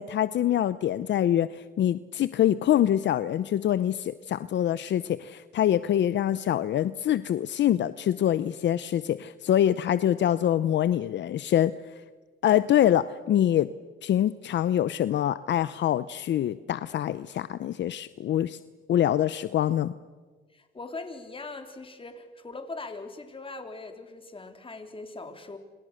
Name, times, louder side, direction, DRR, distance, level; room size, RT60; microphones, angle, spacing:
voice 1, 0.0-11.7 12.4-13.7 14.0-18.6 18.9-19.9, left 11 dB, 65° left, 15 dB, 0.8 m, -25 dB
voice 2, 20.5-25.6, left 3 dB, 25° left, 6 dB, 3.6 m, -41 dB
29.0 x 26.5 x 6.6 m, 1.4 s
cardioid pair, 90°, 20 cm